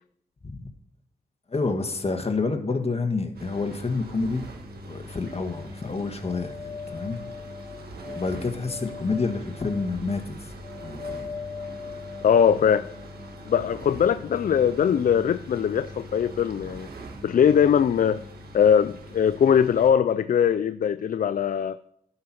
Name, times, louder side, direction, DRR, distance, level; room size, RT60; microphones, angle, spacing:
voice 1, 1.5-4.4 4.9-7.2 8.1-10.5 10.8-11.4, left 3 dB, 40° left, 6 dB, 1.6 m, -28 dB
sound 1, 3.3-19.9, right 1 dB, 85° right, 1.6 m, -42 dB
sound 2, 5.2-14.4, left 5 dB, 25° left, 2.0 m, -41 dB
voice 2, 12.2-12.9 13.5-16.9 17.2-18.2 18.5-21.8, left 8 dB, 60° left, 13 dB, 0.4 m, -21 dB
11.5 x 5.7 x 5.9 m, 0.71 s
cardioid pair, 55°, 16 cm